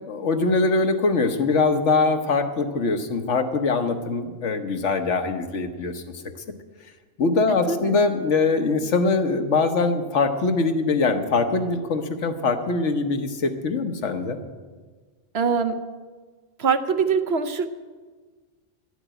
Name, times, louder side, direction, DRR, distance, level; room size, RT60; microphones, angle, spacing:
voice 1, 0.1-6.0 7.2-14.4, left 3 dB, 75° left, 6 dB, 1.4 m, -22 dB
voice 2, 7.5-8.0 15.3-15.7 16.6-17.7, right 5 dB, 60° right, 8 dB, 1.0 m, -23 dB
12.0 x 8.0 x 9.1 m, 1.4 s
omnidirectional pair, 1.3 m